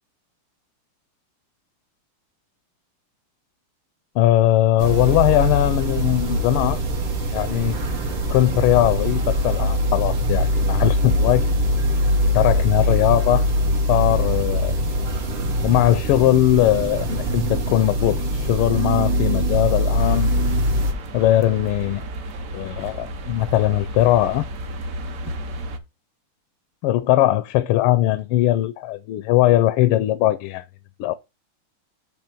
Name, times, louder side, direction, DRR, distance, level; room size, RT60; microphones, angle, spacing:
voice 1, 4.1-6.8 7.3-7.8 8.3-11.4 12.3-13.4 13.9-14.7 15.6-20.3 21.1-22.0 22.5-24.5 26.8-30.6 31.0-31.1, left 14 dB, 80° left, 1.4 m, -20 dB
sound 1, 4.8-20.9, equal, 80° right, 2.5 m, -22 dB
sound 2, 20.0-25.8, right 1 dB, 55° right, 1.0 m, -33 dB
8.8 x 3.2 x 5.9 m
omnidirectional pair, 2.4 m